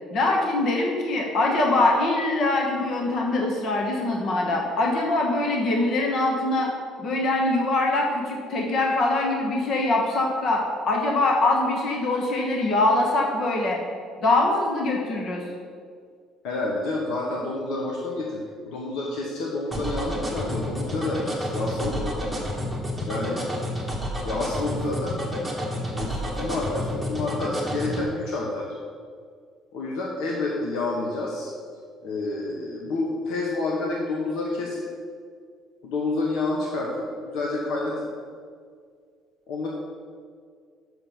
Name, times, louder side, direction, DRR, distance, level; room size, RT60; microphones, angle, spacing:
voice 1, 0.1-6.7 7.0-13.8 14.2-15.4, left 2 dB, 45° left, 0 dB, 1.1 m, -23 dB
voice 2, 16.4-22.2 23.0-23.5 24.2-25.2 25.9-28.7 29.7-31.5 32.0-34.8 35.8-38.0 39.5-39.7, left 2 dB, 70° left, -2 dB, 1.1 m, -29 dB
sound 1, 19.7-28.0, equal, 5° left, 1.3 m, -29 dB
6.3 x 6.0 x 7.1 m, 2.1 s
cardioid pair, 175°, 0 cm